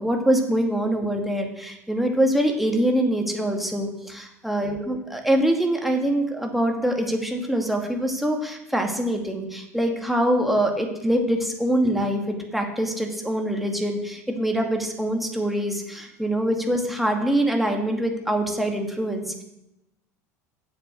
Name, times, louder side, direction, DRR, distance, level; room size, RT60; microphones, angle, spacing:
voice 1, 0.0-19.4, right 1 dB, ahead, 2 dB, 2.3 m, -24 dB
9.8 x 7.5 x 6.9 m, 0.88 s
figure-of-eight pair, 75°, 9 cm